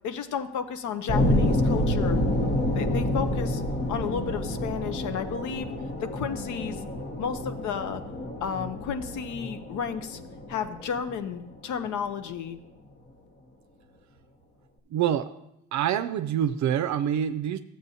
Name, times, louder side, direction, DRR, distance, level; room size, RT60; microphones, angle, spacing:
voice 1, 0.0-2.2 2.7-3.6 3.9-5.7 6.0-6.8 7.2-8.0 8.4-10.2 10.5-12.6, left 7 dB, 75° left, 9 dB, 0.7 m, -32 dB
sound 1, 1.1-11.9, left 1 dB, 35° left, 1.0 m, -28 dB
voice 2, 14.9-15.3 15.7-17.6, right 10 dB, 70° right, 10 dB, 0.5 m, -26 dB
13.0 x 7.7 x 2.7 m, 0.84 s
cardioid pair, 90°, 30 cm